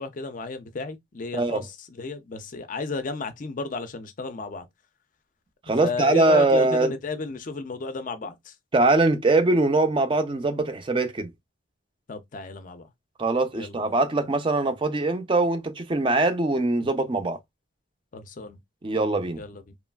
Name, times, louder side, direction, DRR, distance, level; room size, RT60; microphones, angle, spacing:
voice 1, 0.0-4.7 5.8-8.5 12.1-12.9 13.5-13.9 18.1-18.6 19.4-19.6, left 3 dB, 40° left, 0.4 m, -33 dB
voice 2, 5.7-6.9 8.7-11.3 13.2-17.4 18.8-19.4, right 2 dB, 25° right, 0.4 m, -22 dB
3.0 x 2.4 x 2.2 m
head